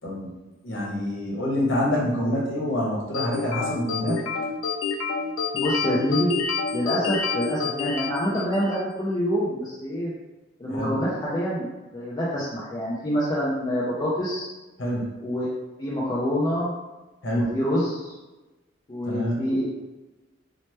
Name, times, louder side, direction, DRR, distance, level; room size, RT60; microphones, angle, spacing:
voice 1, 0.0-0.3 0.6-4.2 10.7-10.9 14.8-15.1 17.2-17.5 19.1-19.4, left 1 dB, 70° left, -4 dB, 0.9 m, -26 dB
sound 1, 3.1-8.9, left 5 dB, 90° left, 0.4 m, -28 dB
voice 2, 5.5-6.3 6.7-10.1 10.6-14.5 15.2-15.5 15.8-16.7 17.3-18.1 18.9-19.6, equal, 20° left, -7 dB, 0.4 m, -26 dB
2.9 x 2.1 x 3.2 m, 1.1 s
head